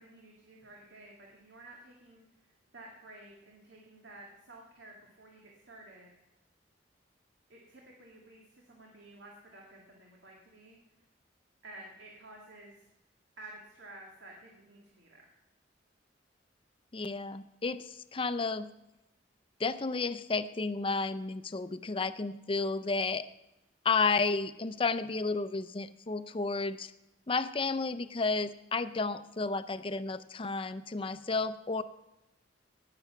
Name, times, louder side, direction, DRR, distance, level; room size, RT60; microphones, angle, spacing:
voice 1, 0.0-6.1 7.5-10.8 11.6-12.9 13.4-15.3, right 2 dB, 90° right, -1 dB, 2.0 m, -52 dB
voice 2, 16.9-18.7 19.6-23.3 23.8-26.9 27.3-31.8, left 4 dB, 30° left, 13 dB, 0.5 m, -32 dB
18.5 x 7.0 x 5.8 m, 0.92 s
head